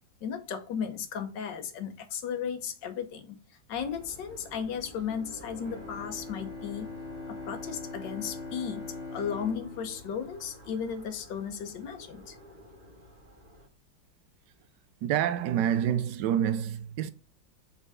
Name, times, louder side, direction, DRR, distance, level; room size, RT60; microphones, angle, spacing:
voice 1, 0.2-3.4 3.7-6.9 7.3-8.9 9.1-12.4, left 7 dB, 70° left, 1.6 m, -35 dB
sound 1, 3.7-13.7, equal, 45° right, 2.0 m, -51 dB
Bowed string instrument, 5.6-11.2, left 3 dB, 25° right, 2.2 m, -42 dB
voice 2, 15.0-17.1, right 10 dB, 75° right, 1.1 m, -27 dB
5.6 x 4.0 x 4.9 m
omnidirectional pair, 2.1 m